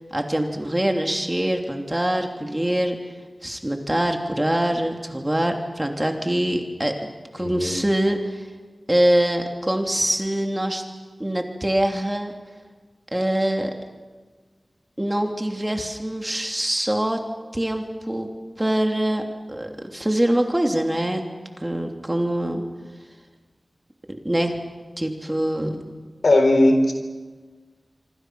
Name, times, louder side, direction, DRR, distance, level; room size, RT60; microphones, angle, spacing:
voice 1, 0.1-3.0 3.4-6.9 7.3-8.4 8.9-10.8 11.2-12.3 13.1-13.7 15.0-17.2 17.5-18.3 18.6-19.2 19.5-21.2 21.6-22.6 24.2-24.5 25.0-25.8, right 1 dB, 15° right, 3 dB, 3.0 m, -24 dB
voice 2, 7.4-7.8 26.2-26.9, left 1 dB, 90° left, 5 dB, 4.1 m, -18 dB
26.0 x 25.5 x 6.3 m, 1.4 s
wide cardioid pair, 80°, 0 cm